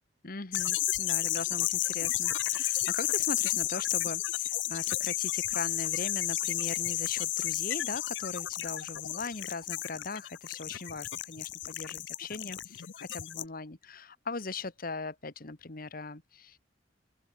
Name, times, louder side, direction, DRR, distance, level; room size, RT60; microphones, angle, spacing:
voice 1, 0.2-16.6, left 3 dB, 50° left, 1.5 m, -40 dB
sound 1, 0.5-13.4, left 15 dB, 85° left, 0.7 m, -32 dB
open air
head